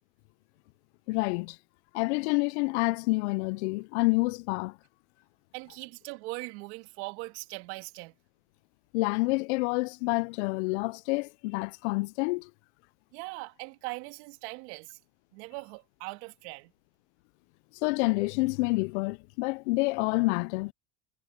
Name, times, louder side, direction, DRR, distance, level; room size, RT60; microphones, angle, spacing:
voice 1, 1.1-1.6 1.9-4.8 8.9-12.5 17.8-20.7, left 26 dB, 75° left, 0.5 m, -28 dB
voice 2, 5.5-8.1 13.1-15.0 15.3-16.7, right 27 dB, 75° right, 2.4 m, -40 dB
supercardioid pair, 90°, 34 cm